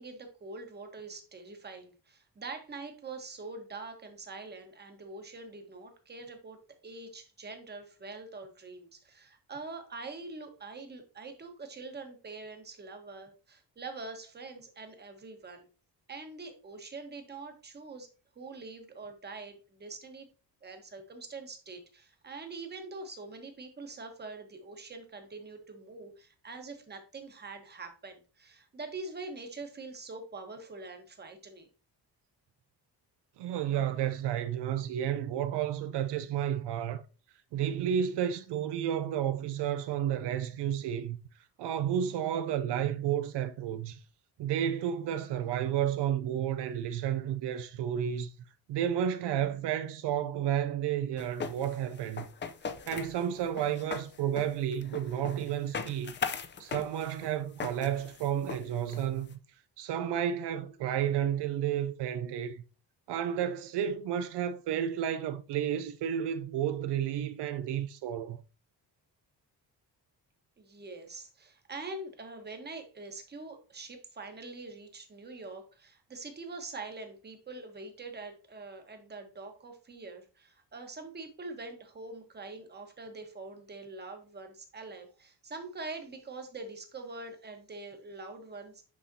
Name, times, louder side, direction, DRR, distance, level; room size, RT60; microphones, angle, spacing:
voice 1, 0.0-6.6 6.8-15.7 16.1-18.1 18.4-20.3 20.6-31.7 70.6-88.8, right 3 dB, 25° right, 1.2 m, -44 dB
voice 2, 33.4-37.0 37.5-41.2 41.6-44.0 44.4-48.3 48.7-52.3 52.9-56.2 56.6-59.4 59.8-62.6 63.1-68.4, right 10 dB, 80° right, 0.5 m, -31 dB
sound 1, 51.2-59.3, left 6 dB, 30° left, 0.5 m, -39 dB
6.3 x 5.7 x 2.7 m
cardioid pair, 150°, 40 cm